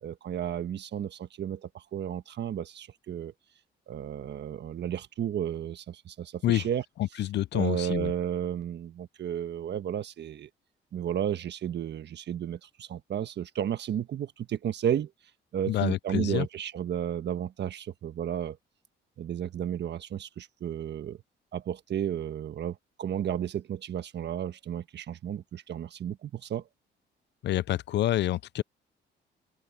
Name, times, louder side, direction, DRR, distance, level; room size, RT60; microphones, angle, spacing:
voice 1, 0.0-3.3 3.9-6.8 7.5-10.5 10.9-15.1 15.5-18.6 19.2-21.2 21.5-26.6, right 9 dB, 60° right, 1.4 m, -33 dB
voice 2, 7.0-8.1 15.7-16.5 27.4-28.6, left 13 dB, 60° left, 0.5 m, -27 dB
cardioid pair, 90°, 20 cm